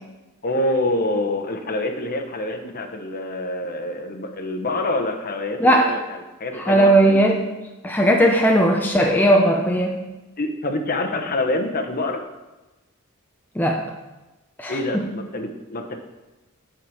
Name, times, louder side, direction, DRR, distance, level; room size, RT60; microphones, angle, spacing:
voice 1, 0.4-7.5 10.4-12.2 14.7-16.0, left 2 dB, 40° left, 4 dB, 0.9 m, -26 dB
voice 2, 5.6-6.0 6.6-7.4 7.8-10.1 13.6-13.8 14.6-15.0, right 1 dB, 10° left, 1 dB, 0.6 m, -17 dB
8.8 x 5.0 x 6.3 m, 1.1 s
head